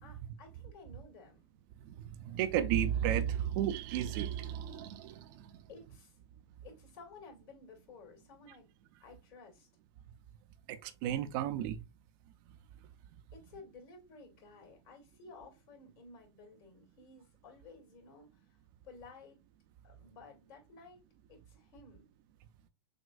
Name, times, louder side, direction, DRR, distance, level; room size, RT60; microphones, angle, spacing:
voice 1, 0.0-1.4 5.7-6.2 6.6-8.7 9.0-9.7 13.3-18.6 18.8-19.4 19.8-21.0 21.3-22.1, left 4 dB, 50° left, 2.2 m, -55 dB
voice 2, 1.8-5.5 10.7-11.8, right 10 dB, 50° right, 0.6 m, -33 dB
6.4 x 2.4 x 2.3 m
hypercardioid pair, 105°, 15 cm